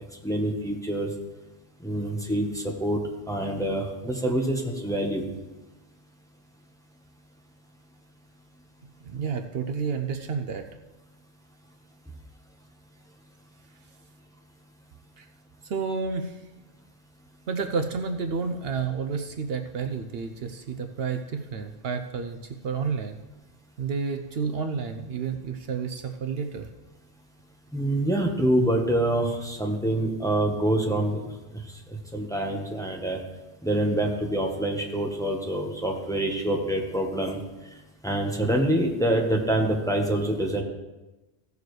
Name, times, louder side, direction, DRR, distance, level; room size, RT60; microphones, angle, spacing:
voice 1, 0.2-1.1 1.8-3.0 3.3-5.2 27.7-31.2 32.1-33.2 33.6-37.4 38.0-40.6, right 1 dB, 5° left, 0 dB, 1.1 m, -26 dB
voice 2, 9.0-10.7 15.2-15.3 15.6-16.4 17.5-23.2 23.8-26.7, right 5 dB, 65° right, 7 dB, 0.8 m, -30 dB
16.0 x 6.8 x 3.2 m, 1.1 s
omnidirectional pair, 1.1 m